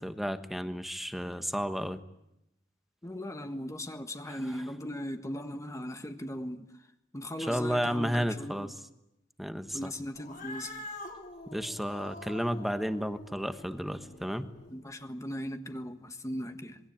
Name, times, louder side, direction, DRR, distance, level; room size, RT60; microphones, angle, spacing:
voice 1, 0.0-2.0 4.3-4.6 7.4-8.8 9.4-9.9 11.5-14.5, equal, ahead, 9 dB, 1.3 m, -32 dB
voice 2, 3.0-6.7 7.1-8.7 9.7-10.7 14.7-16.8, equal, 15° left, 7 dB, 1.6 m, -38 dB
Cat, 10.1-14.8, left 2 dB, 45° left, 4.5 m, -46 dB
26.5 x 22.0 x 8.9 m, 0.84 s
head